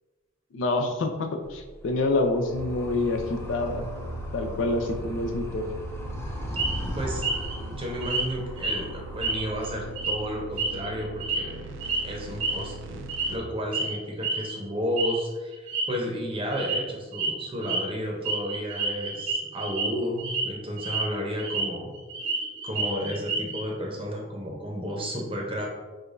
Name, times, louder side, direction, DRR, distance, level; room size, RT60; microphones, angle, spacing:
voice 1, 0.5-3.9 4.3-5.6, left 2 dB, 75° left, 4 dB, 0.5 m, -27 dB
Animal, 1.4-10.0, equal, 15° left, 0.4 m, -38 dB
sound 1, 2.5-13.4, right 2 dB, 65° right, 0.4 m, -41 dB
sound 2, 6.6-6.8 7.2-7.5 8.0-8.3 8.6-8.8 9.2-9.7 10.0-10.2 10.6-11.5 11.8-12.0 12.4-12.6 13.1-13.4 13.7-13.9 14.2-14.5 15.0-15.2 15.5-15.9 16.5-16.8 17.1-17.3 17.6-17.8 18.2-19.9 20.2-20.4 20.8-21.7 22.0-23.6, right 3 dB, 80° right, 0.8 m, -29 dB
voice 2, 7.7-11.8 12.0-21.9 22.6-25.7, equal, 30° right, -1 dB, 0.7 m, -32 dB
4.8 x 2.2 x 2.5 m, 1.3 s
head